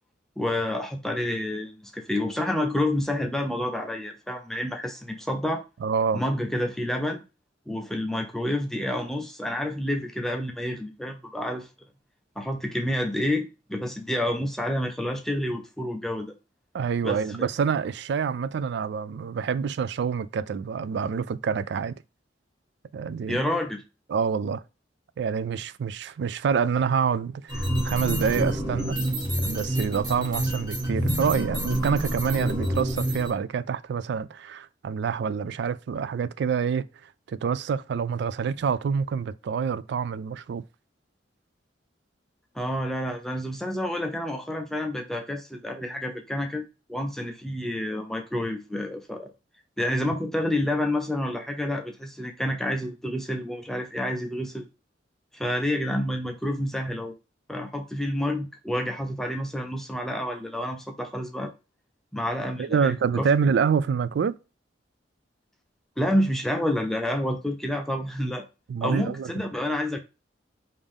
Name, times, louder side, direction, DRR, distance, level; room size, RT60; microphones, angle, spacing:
voice 1, 0.4-5.6 6.1-7.2 7.7-11.7 12.4-16.3 17.0-17.2 23.3-23.8 42.5-49.3 49.8-54.7 55.3-57.1 57.5-61.5 62.1-63.3 66.0-68.5 68.8-70.0, left 1 dB, ahead, 0.4 m, -29 dB
voice 2, 5.8-6.2 16.7-22.0 22.9-23.4 24.1-24.6 25.2-29.0 29.4-36.9 37.3-40.6 62.6-64.3 68.7-69.3, right 6 dB, 65° right, 0.3 m, -27 dB
sound 1, 27.5-33.3, right 1 dB, 25° right, 1.7 m, -27 dB
5.1 x 2.6 x 3.5 m
head